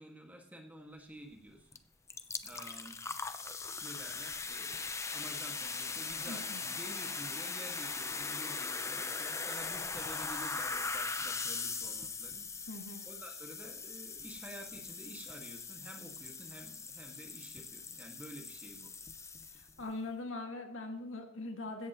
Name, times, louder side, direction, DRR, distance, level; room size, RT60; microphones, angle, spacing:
voice 1, 0.0-1.7 2.4-3.0 3.8-12.5 13.1-18.9, equal, 10° right, 2 dB, 2.0 m, -50 dB
sound 1, 1.7-1.8 2.1-19.8, left 4 dB, 15° left, 0.7 m, -40 dB
voice 2, 6.3-6.6 12.7-13.0 19.5-21.9, left 2 dB, 75° left, 3 dB, 2.3 m, -42 dB
16.0 x 14.0 x 3.1 m, 0.67 s
head